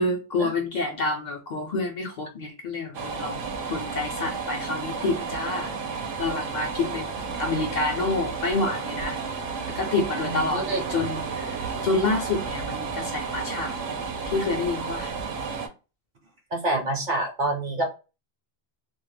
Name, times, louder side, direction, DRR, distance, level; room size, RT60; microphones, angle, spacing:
voice 1, 0.0-5.7 6.2-7.1 7.4-9.2 9.8-13.7 14.2-15.2, left 3 dB, 55° left, 0.5 m, -28 dB
sound 1, 2.9-15.7, right 5 dB, 90° right, 0.8 m, -32 dB
voice 2, 10.2-10.8 16.5-17.9, right 2 dB, 55° right, 0.7 m, -27 dB
2.2 x 2.0 x 3.1 m
omnidirectional pair, 1.0 m